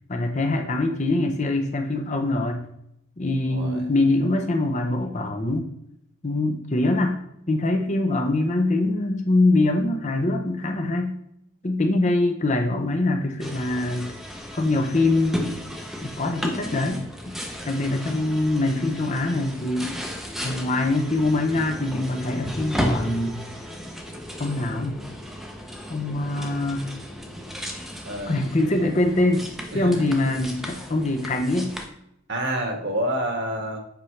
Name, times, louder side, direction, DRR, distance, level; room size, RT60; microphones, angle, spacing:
voice 1, 0.1-2.6 3.2-5.6 6.2-7.2 7.5-11.1 11.6-14.1 14.5-15.6 16.0-17.4 17.7-19.9 20.4-23.4 24.4-25.0 25.9-26.9 28.3-29.5 29.7-31.7, left 2 dB, 30° left, 4 dB, 0.7 m, -23 dB
voice 2, 3.5-3.8 28.0-28.4 29.7-30.0 32.3-33.8, right 1 dB, 50° right, 2 dB, 1.4 m, -28 dB
sound 1, 13.4-31.9, equal, ahead, 0.7 m, -34 dB
8.3 x 5.2 x 3.3 m, 0.77 s
head